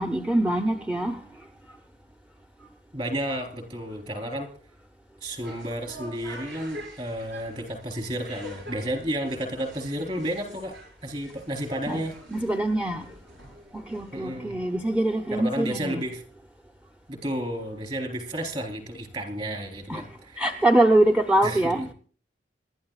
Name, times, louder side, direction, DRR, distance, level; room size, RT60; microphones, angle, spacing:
voice 1, 0.0-1.5 6.3-6.4 11.9-12.0 12.3-13.1 13.7-16.0 19.9-21.9, right 1 dB, 5° right, 0.6 m, -24 dB
voice 2, 2.9-4.5 5.2-12.2 14.1-14.6 15.3-16.2 17.1-20.5 21.4-21.8, right 1 dB, 30° right, 3.5 m, -32 dB
sound 1, 5.2-14.3, equal, 75° right, 6.3 m, -46 dB
26.5 x 12.5 x 2.4 m
head